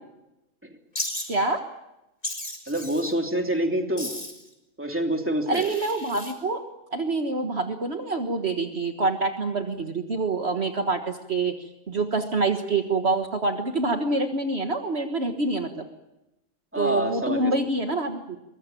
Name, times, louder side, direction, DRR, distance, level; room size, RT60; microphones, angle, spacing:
Wild animals, 0.9-1.3 2.2-3.1 4.0-4.5 5.5-6.3, left 1 dB, 35° left, 4.4 m, -34 dB
voice 1, 1.3-1.6 5.5-6.6 6.9-11.5 11.9-15.9 16.8-18.4, right 3 dB, 55° right, 5 dB, 1.8 m, -26 dB
voice 2, 2.7-4.1 4.8-5.6 16.7-17.5, right 1 dB, 10° right, 3 dB, 3.1 m, -26 dB
24.0 x 21.5 x 9.1 m, 0.92 s
omnidirectional pair, 1.4 m